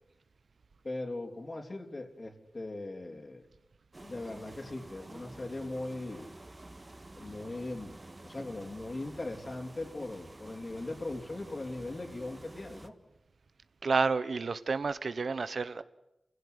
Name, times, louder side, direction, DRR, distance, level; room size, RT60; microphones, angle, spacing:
voice 1, 0.8-3.4 4.0-6.3 7.2-8.0 8.2-12.9, left 2 dB, 50° left, 3.8 m, -39 dB
sound 1, 3.9-12.9, right 2 dB, 35° right, 1.8 m, -50 dB
voice 2, 13.8-15.8, right 4 dB, 80° right, 1.1 m, -30 dB
28.5 x 16.5 x 9.9 m
wide cardioid pair, 55°, 0 cm